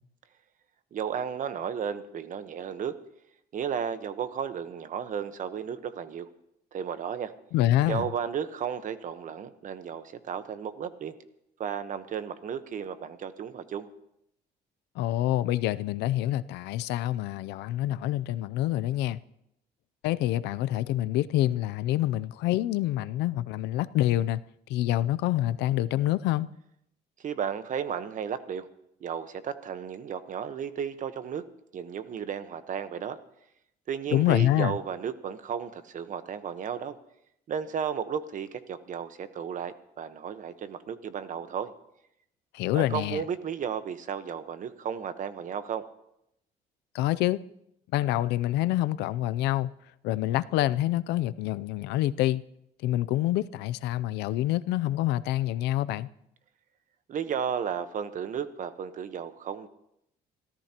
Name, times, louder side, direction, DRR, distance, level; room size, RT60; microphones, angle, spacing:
voice 1, 0.9-3.0 3.5-6.3 6.7-7.3 7.9-11.1 11.6-13.9 27.2-28.7 29.0-31.4 31.7-33.2 33.9-37.0 37.5-41.7 42.7-45.8 57.1-59.7, right 8 dB, 50° right, 1.1 m, -34 dB
voice 2, 7.5-8.1 15.0-19.2 20.0-24.4 24.7-26.5 34.1-34.7 42.5-43.2 46.9-47.4 47.9-49.7 50.0-52.4 52.8-56.1, left 14 dB, 85° left, 0.5 m, -26 dB
27.0 x 14.0 x 3.0 m
cardioid pair, 110°, 17 cm